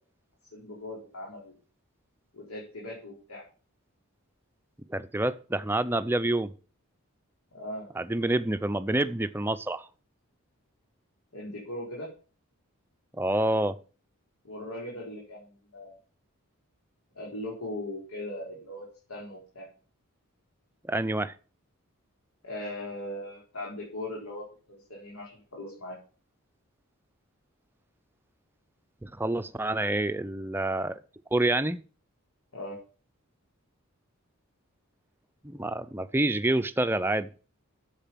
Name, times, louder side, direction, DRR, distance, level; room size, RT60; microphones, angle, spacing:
voice 1, 0.5-1.6 2.3-3.4 7.5-7.9 11.3-12.1 14.4-16.0 17.1-19.7 22.4-26.0 32.5-32.8, left 1 dB, 85° left, 4.9 m, -39 dB
voice 2, 4.9-6.5 8.0-9.9 13.1-13.8 20.9-21.3 29.0-31.0 31.3-31.8 35.4-37.3, right 1 dB, 10° right, 0.5 m, -27 dB
10.5 x 8.2 x 5.8 m
head